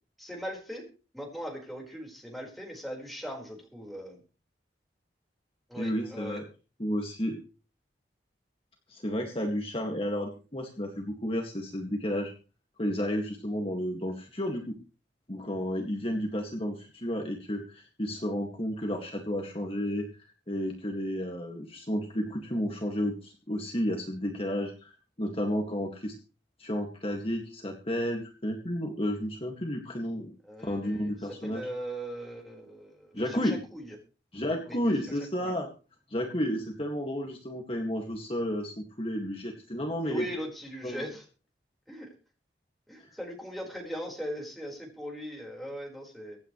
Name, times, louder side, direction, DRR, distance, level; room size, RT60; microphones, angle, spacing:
voice 1, 0.2-0.9 1.1-4.2 5.7-6.4 30.4-31.1 31.4-34.0 34.7-35.5 40.0-41.2 41.9-42.1 42.9-46.4, equal, ahead, -1 dB, 4.7 m, -40 dB
voice 2, 5.8-6.5 6.8-7.4 8.9-12.3 12.8-14.8 15.3-20.1 20.5-24.9 25.2-26.1 26.6-30.3 30.6-31.6 33.1-33.6 34.3-35.7 36.1-40.3 40.8-41.1 43.0-43.1, equal, 30° left, 1 dB, 2.0 m, -32 dB
25.0 x 9.4 x 3.2 m, 0.35 s
head